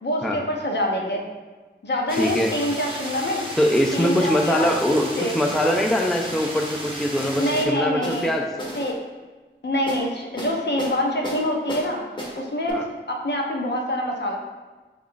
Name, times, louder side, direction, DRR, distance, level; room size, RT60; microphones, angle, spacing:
voice 1, 0.0-1.2 1.8-3.4 3.9-5.3 7.4-8.3 8.8-8.9 9.6-12.0 12.3-14.4, left 1 dB, 60° left, 0 dB, 0.6 m, -25 dB
voice 2, 2.1-2.5 3.6-8.5 12.7-12.9, equal, ahead, 1 dB, 0.3 m, -22 dB
sound 1, 2.1-7.7, right 1 dB, 25° right, 0.8 m, -34 dB
sound 2, 7.2-7.7 8.0-8.9 9.9-10.0 10.4-11.0 11.2-11.9 12.2-12.4 12.7-12.8, equal, 25° left, 0.8 m, -33 dB
4.2 x 2.4 x 3.7 m, 1.3 s
wide cardioid pair, 75°, 20 cm